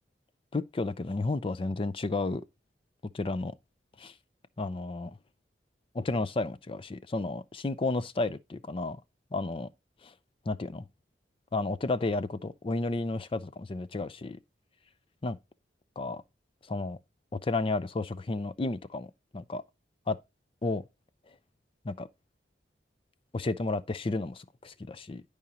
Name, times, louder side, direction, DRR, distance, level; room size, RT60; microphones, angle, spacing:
voice 1, 0.5-2.4 3.1-3.5 4.0-4.1 4.6-5.1 5.9-9.0 9.3-9.7 10.0-10.1 10.5-10.8 11.5-14.4 15.2-15.4 16.0-16.2 16.7-17.0 17.3-19.6 20.1-20.2 20.6-20.8 21.8-22.1 23.3-25.2, left 2 dB, 30° left, 0.5 m, -32 dB
10.5 x 4.9 x 2.8 m
head